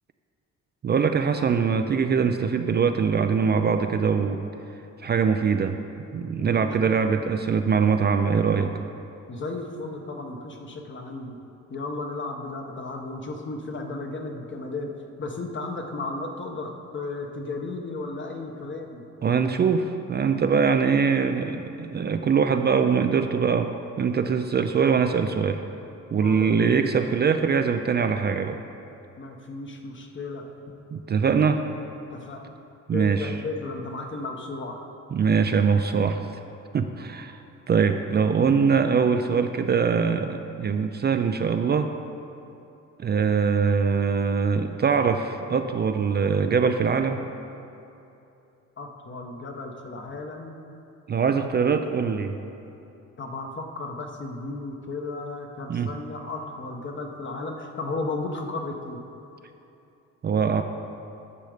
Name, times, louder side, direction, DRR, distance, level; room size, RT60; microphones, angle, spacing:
voice 1, 0.8-4.4 5.0-5.8 6.1-8.7 19.2-25.6 26.1-28.6 30.9-31.6 32.9-33.3 35.1-36.2 36.7-37.4 37.7-41.9 43.0-47.2 51.1-52.3 55.7-55.9 60.2-60.6, right 6 dB, 35° right, 7 dB, 0.4 m, -23 dB
voice 2, 6.3-7.3 9.3-11.4 11.7-14.9 15.2-19.1 26.2-26.5 29.2-30.5 32.1-32.5 32.9-34.8 48.8-50.6 51.4-51.5 51.7-52.0 53.2-59.0, left 3 dB, 40° left, 3 dB, 1.1 m, -34 dB
9.7 x 6.6 x 5.0 m, 2.8 s
cardioid pair, 90°, 30 cm